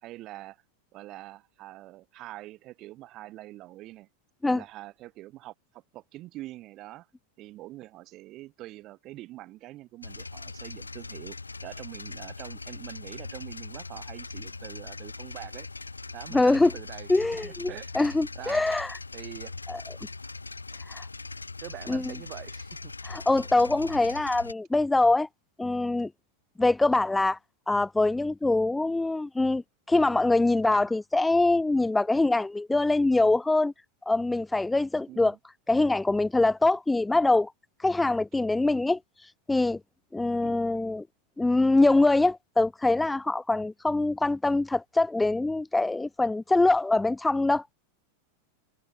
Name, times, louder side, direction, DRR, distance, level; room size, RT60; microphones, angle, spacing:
voice 1, 0.0-0.6 0.9-4.1 4.4-7.1 7.4-11.4 11.6-15.7 16.1-17.1 17.4-17.9 18.3-18.7 19.1-19.5 21.6-22.9 35.1-35.4 40.4-40.6, right 16 dB, 35° right, 3.4 m, -44 dB
sound 1, 10.0-24.5, left 3 dB, 80° left, 0.6 m, -41 dB
voice 2, 16.3-16.7 17.1-19.0 19.7-19.8 20.9-21.1 21.9-22.1 23.0-25.3 25.6-26.1 26.6-27.4 27.7-29.6 29.9-33.7 34.1-35.3 35.7-37.5 37.8-39.8 40.1-41.0 41.4-47.7, left 2 dB, 5° left, 0.3 m, -24 dB
figure-of-eight pair, 90°, 0 cm